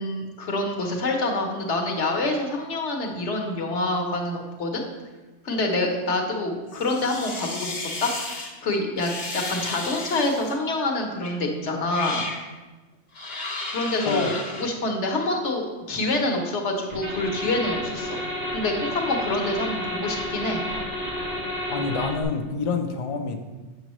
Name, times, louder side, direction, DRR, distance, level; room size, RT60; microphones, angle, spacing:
voice 1, 0.0-4.8 5.4-7.7 8.0-8.1 8.6-12.3 13.7-18.2 18.5-20.6, left 2 dB, 90° left, 2 dB, 1.3 m, -26 dB
sound 1, 6.7-8.5 9.0-10.5 11.2-11.4 11.8-12.4 13.1-14.6, left 3 dB, 60° left, 1.3 m, -33 dB
voice 2, 14.1-14.4 21.7-23.4, left 4 dB, 40° left, 4 dB, 0.5 m, -27 dB
sound 2, 16.9-22.2, left 1 dB, 40° right, 1.7 m, -31 dB
7.8 x 6.2 x 3.0 m, 1.2 s
omnidirectional pair, 1.1 m